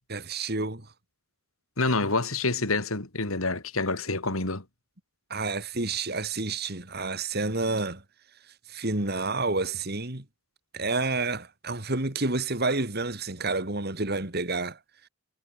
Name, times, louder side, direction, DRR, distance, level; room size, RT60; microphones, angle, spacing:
voice 1, 0.1-0.8 5.3-8.0 8.7-10.2 10.7-14.8, right 3 dB, 50° right, 2.8 m, -29 dB
voice 2, 1.8-4.6, left 3 dB, 80° left, 3.5 m, -27 dB
head